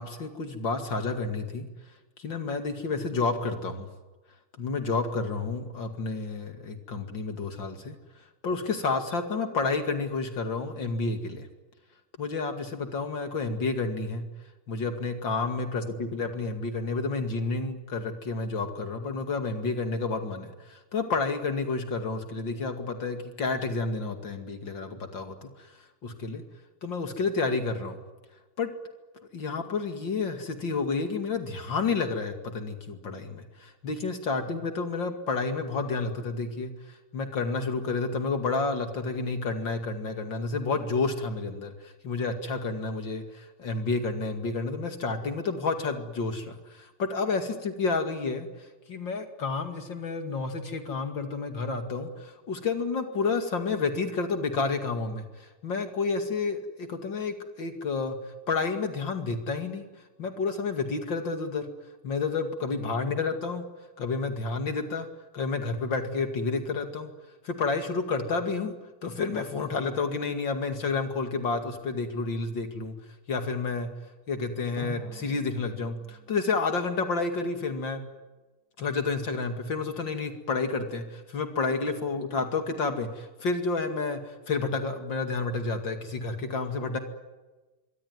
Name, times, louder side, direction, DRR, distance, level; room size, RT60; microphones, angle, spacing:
voice 1, 0.0-1.7 2.2-3.9 4.6-7.9 8.4-11.5 12.2-14.2 14.7-26.4 26.8-28.0 28.6-28.7 29.3-59.9 60.2-61.7 62.0-63.7 64.0-65.1 65.3-67.1 67.4-68.7 69.0-73.0 73.3-73.9 74.3-78.0 78.8-87.0, left 4 dB, 65° left, 6 dB, 3.0 m, -30 dB
Drum, 74.8-77.7, right 1 dB, 40° left, 7.4 m, -45 dB
25.5 x 24.0 x 9.6 m, 1.2 s
omnidirectional pair, 2.2 m